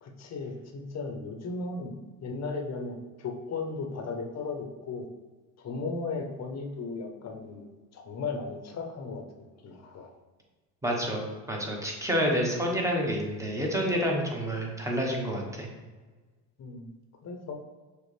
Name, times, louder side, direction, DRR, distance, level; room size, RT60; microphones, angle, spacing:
voice 1, 0.0-5.1 5.6-7.7 7.9-9.2 9.6-10.1 16.6-16.9 17.2-17.6, left 4 dB, 40° left, 3 dB, 0.9 m, -36 dB
voice 2, 10.8-15.7, equal, 5° right, -1 dB, 1.1 m, -29 dB
6.4 x 2.4 x 3.3 m, 1.3 s
supercardioid pair, 95°, 42 cm